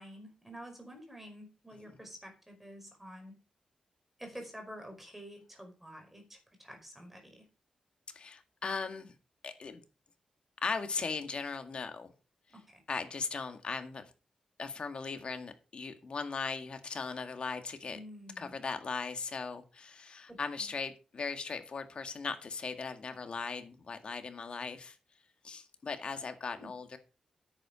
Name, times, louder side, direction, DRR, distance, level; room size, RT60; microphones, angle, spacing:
voice 1, 0.0-3.4 4.2-7.4 12.5-12.8 17.9-18.5 20.3-20.7 26.5-26.7, equal, 10° right, 4.8 m, -49 dB
voice 2, 8.1-9.1 9.4-9.8 10.6-12.1 12.9-14.1 14.6-18.0 18.4-25.0 25.4-27.0, left 4 dB, 50° left, 1.9 m, -38 dB
9.9 x 8.6 x 5.2 m
wide cardioid pair, 100°, 2 cm